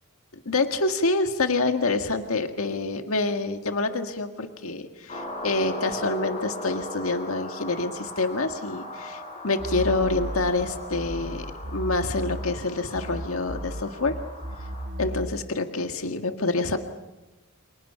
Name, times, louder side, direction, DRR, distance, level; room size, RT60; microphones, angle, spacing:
voice 1, 0.5-11.5 11.7-14.1 15.0-16.8, left 3 dB, 85° left, 6 dB, 1.8 m, -27 dB
sound 1, 5.1-14.9, left 1 dB, 35° left, 6.8 m, -38 dB
sound 2, 9.6-12.7 12.9-15.5, equal, 55° right, 2.0 m, -34 dB
30.0 x 28.5 x 5.7 m, 1.1 s
head